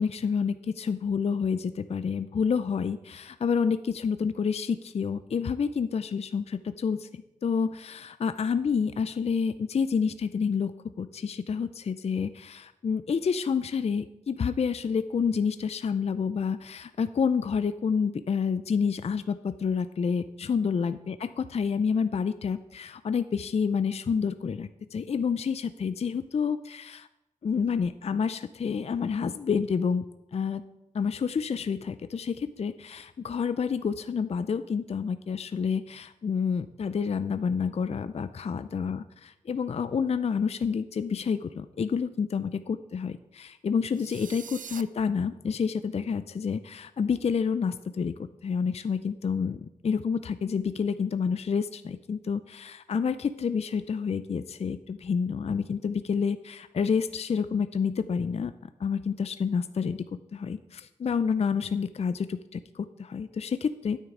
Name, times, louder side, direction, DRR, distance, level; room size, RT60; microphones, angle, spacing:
voice 1, 0.0-27.1 27.4-30.0 30.3-30.6 30.9-39.0 39.5-58.5 58.8-60.0 60.3-64.0, left 6 dB, 50° left, 12 dB, 0.4 m, -29 dB
sound 1, 43.9-44.8, right 7 dB, 70° right, 0.4 m, -43 dB
9.3 x 9.1 x 3.7 m, 0.96 s
cardioid pair, 60°, 14 cm